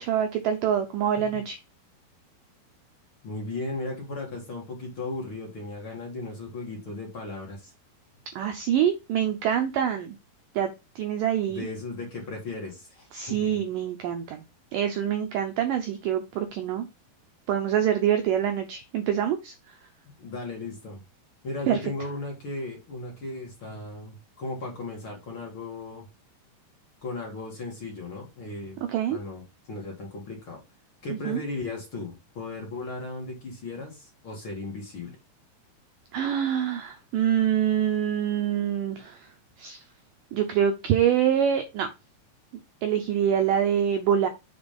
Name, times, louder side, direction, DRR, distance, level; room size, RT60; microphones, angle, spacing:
voice 1, 0.0-1.6 8.4-10.2 10.5-11.7 13.1-14.4 14.7-16.9 17.5-19.5 21.7-21.8 28.9-29.2 31.1-31.4 36.1-39.3 39.6-39.8 40.3-41.9 42.8-44.3, right 9 dB, 90° right, 7 dB, 1.9 m, -25 dB
voice 2, 3.2-7.7 11.5-13.5 20.2-21.0 21.4-26.0 27.0-28.8 29.1-30.6 31.0-35.2, left 2 dB, 40° left, -1 dB, 2.4 m, -36 dB
7.2 x 3.9 x 5.2 m, 0.25 s
omnidirectional pair, 4.9 m